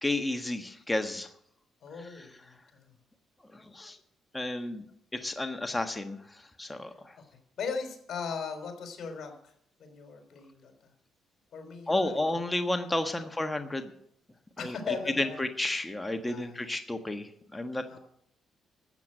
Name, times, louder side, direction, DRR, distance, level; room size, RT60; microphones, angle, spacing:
voice 1, 0.0-1.3 2.0-2.3 3.5-4.0 4.3-4.9 5.1-7.2 11.9-13.9 14.6-14.8 15.2-18.0, left 1 dB, 10° left, 6 dB, 1.3 m, -32 dB
voice 2, 1.8-2.9 7.2-7.3 7.6-9.4 9.8-10.9 11.5-12.4 14.6-15.4 16.2-16.7 17.9-18.0, left 5 dB, 60° left, 5 dB, 3.9 m, -38 dB
13.5 x 7.7 x 8.9 m, 0.70 s
cardioid pair, 90°, 0 cm